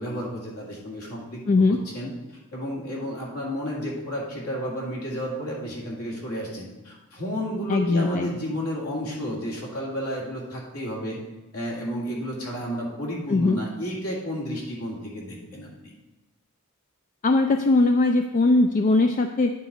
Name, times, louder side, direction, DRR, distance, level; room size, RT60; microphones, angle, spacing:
voice 1, 0.0-1.4 1.7-2.1 2.5-11.2 11.5-15.9, equal, 75° left, -3 dB, 2.2 m, -32 dB
voice 2, 1.5-1.8 7.7-8.3 13.3-13.6 17.2-19.5, left 2 dB, 35° left, 6 dB, 0.3 m, -20 dB
9.5 x 4.1 x 4.9 m, 1.1 s
head